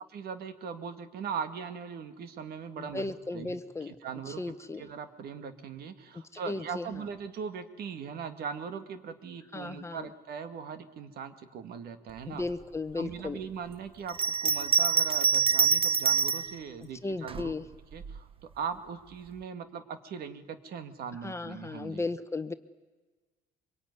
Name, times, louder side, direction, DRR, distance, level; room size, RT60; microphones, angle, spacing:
voice 1, 0.1-4.4 4.8-12.4 13.0-17.5 17.9-18.3 18.5-22.0, right 6 dB, 65° right, 9 dB, 2.0 m, -40 dB
voice 2, 2.8-3.9 4.3-4.8 6.3-6.9 9.5-10.1 12.3-13.4 17.0-17.6 21.2-22.5, left 3 dB, 15° left, 11 dB, 1.0 m, -35 dB
Bell, 14.1-16.5 17.3-18.2, right 6 dB, 35° right, 0.9 m, -25 dB
24.5 x 22.0 x 9.7 m, 1.3 s
cardioid pair, 110°, 17 cm